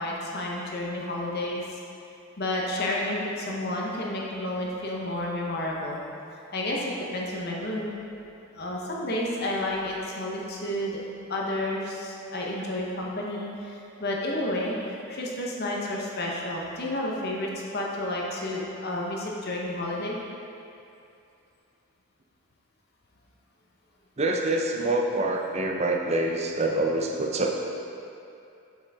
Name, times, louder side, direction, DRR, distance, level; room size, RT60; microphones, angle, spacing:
voice 1, 0.0-1.8 2.4-6.0 6.5-7.9 8.5-11.0 11.3-20.1, left 1 dB, 45° left, -3 dB, 0.8 m, -31 dB
voice 2, 24.2-27.7, right 2 dB, 30° right, 1 dB, 0.5 m, -26 dB
7.3 x 5.6 x 3.5 m, 2.6 s
head